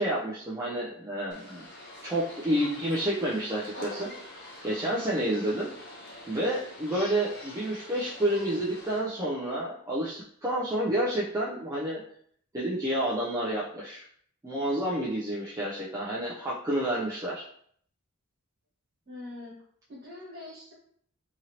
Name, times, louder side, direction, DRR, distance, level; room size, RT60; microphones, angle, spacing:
voice 1, 0.0-1.7 2.0-4.1 4.4-5.7 6.3-12.0 12.5-14.0 14.4-17.4, right 1 dB, 15° right, -7 dB, 0.3 m, -29 dB
sound 1, 1.3-9.0, left 1 dB, 50° left, 0.7 m, -45 dB
voice 2, 19.0-19.5 19.9-20.7, left 2 dB, 45° right, -6 dB, 1.4 m, -43 dB
2.9 x 2.6 x 2.8 m, 0.63 s
head